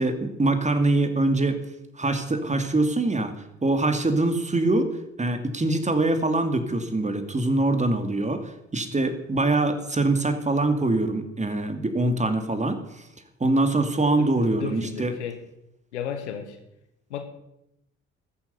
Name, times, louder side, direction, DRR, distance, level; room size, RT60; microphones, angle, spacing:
voice 1, 0.0-1.6 2.0-3.3 3.6-4.9 5.2-13.0 13.4-15.1, right 2 dB, 20° right, 8 dB, 2.7 m, -24 dB
voice 2, 14.2-15.4 15.9-16.6 17.1-17.2, left 8 dB, 80° left, 8 dB, 1.6 m, -34 dB
13.5 x 10.0 x 8.3 m, 0.83 s
figure-of-eight pair, 50°, 34 cm